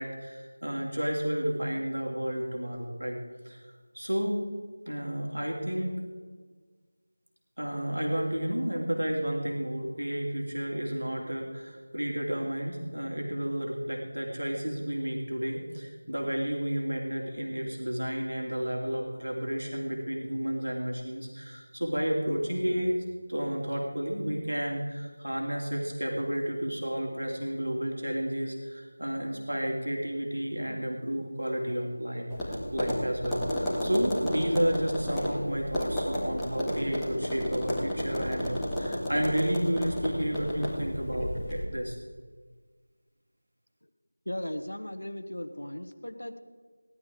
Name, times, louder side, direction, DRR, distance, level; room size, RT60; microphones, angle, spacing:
voice 1, 0.0-3.2 3.4-3.6 3.9-4.4 4.8-6.0 7.6-23.0 23.3-42.0, equal, 80° right, -1 dB, 2.8 m, -31 dB
Tap, 32.3-41.6, equal, 5° left, 2.0 m, -32 dB
voice 2, 44.2-46.4, left 1 dB, 85° left, 9 dB, 1.5 m, -37 dB
18.5 x 11.5 x 3.7 m, 1.5 s
figure-of-eight pair, 170°, 0 cm